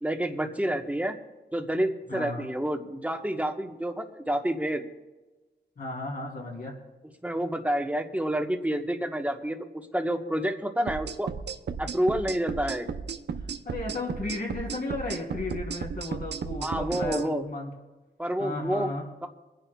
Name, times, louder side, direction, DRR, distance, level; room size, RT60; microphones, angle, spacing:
voice 1, 0.0-1.1 1.5-4.8 7.2-9.6 9.9-11.3 11.8-12.9 16.6-17.4 18.2-18.9 19.2-19.3, right 1 dB, 10° right, 4 dB, 1.3 m, -28 dB
voice 2, 2.1-2.5 5.8-6.7 13.6-17.7 18.4-19.1, left 2 dB, 55° left, -1 dB, 3.4 m, -34 dB
sound 1, 10.9-17.2, right 6 dB, 70° right, 0.7 m, -34 dB
27.5 x 10.0 x 2.4 m, 1.2 s
wide cardioid pair, 85°, 18 cm